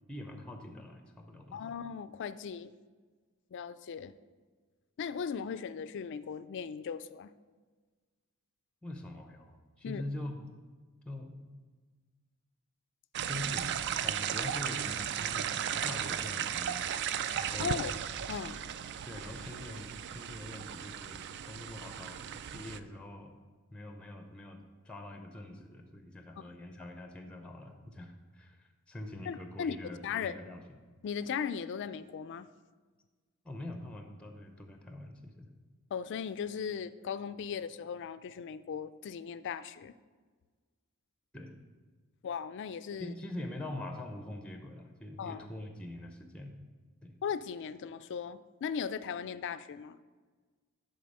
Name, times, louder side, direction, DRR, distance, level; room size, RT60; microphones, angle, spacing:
voice 1, 0.1-1.8 8.8-10.5 11.0-11.4 13.2-16.8 17.4-17.8 19.1-22.2 22.5-23.4 23.7-30.6 33.4-35.5 41.3-41.5 43.0-46.6 47.0-47.2, left 1 dB, 5° left, 5 dB, 0.6 m, -44 dB
voice 2, 1.5-2.7 3.5-4.1 5.0-7.3 9.8-10.0 17.6-17.9 18.3-18.6 26.4-26.5 29.3-30.4 31.0-32.5 35.9-39.9 42.2-43.1 45.2-45.4 47.2-50.0, left 7 dB, 55° left, 14 dB, 0.3 m, -38 dB
sound 1, 13.1-22.8, right 9 dB, 55° right, 0.3 m, -36 dB
10.0 x 4.3 x 5.4 m, 1.4 s
head